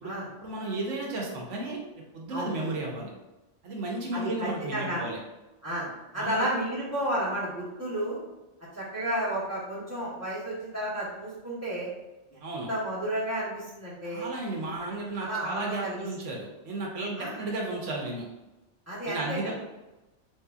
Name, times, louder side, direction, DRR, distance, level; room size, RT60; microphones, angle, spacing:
voice 1, 0.4-1.8 2.1-3.1 3.6-5.2 6.2-6.5 12.4-12.7 14.0-18.2 19.1-19.5, right 2 dB, 75° right, -1 dB, 1.1 m, -33 dB
voice 2, 4.1-5.1 5.6-8.2 8.7-11.9 12.3-12.4 12.7-14.2 14.8-16.1 17.2-17.4 18.9-19.5, right 1 dB, 15° left, -9 dB, 0.9 m, -32 dB
4.0 x 2.7 x 2.3 m, 1.0 s
omnidirectional pair, 1.3 m